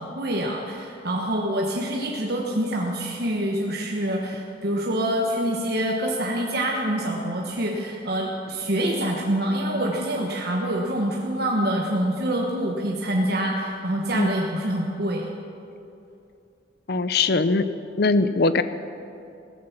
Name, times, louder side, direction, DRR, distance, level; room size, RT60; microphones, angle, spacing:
voice 1, 0.0-15.3, right 1 dB, 55° right, -1 dB, 1.3 m, -26 dB
voice 2, 16.9-17.7 18.0-18.6, left 3 dB, 55° left, 12 dB, 0.7 m, -21 dB
16.0 x 14.5 x 6.0 m, 2.7 s
head